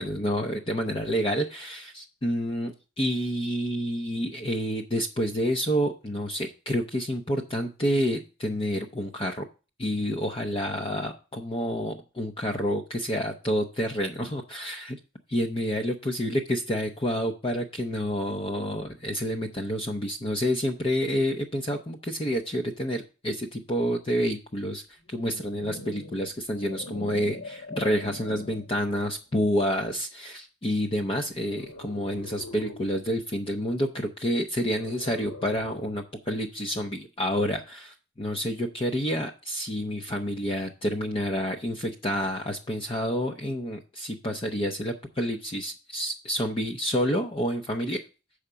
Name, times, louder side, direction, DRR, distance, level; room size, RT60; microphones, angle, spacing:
voice 1, 0.0-9.4 9.8-15.0 15.3-48.0, equal, 25° left, 3 dB, 0.7 m, -29 dB
sound 1, 25.1-28.7 29.4-29.6 31.4-32.9 34.6-36.1, left 1 dB, 80° left, 1.7 m, -42 dB
7.1 x 5.0 x 6.7 m, 0.32 s
head